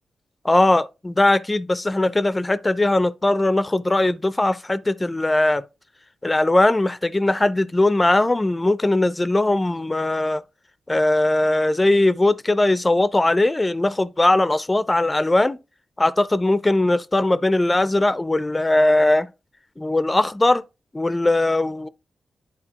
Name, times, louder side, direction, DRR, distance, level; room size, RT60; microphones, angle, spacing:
voice 1, 0.5-5.6 6.2-10.4 10.9-15.6 16.0-19.3 19.8-20.6 20.9-21.9, left 2 dB, 15° left, 0.4 m, -19 dB
11.0 x 4.2 x 2.9 m
wide cardioid pair, 135°, 0 cm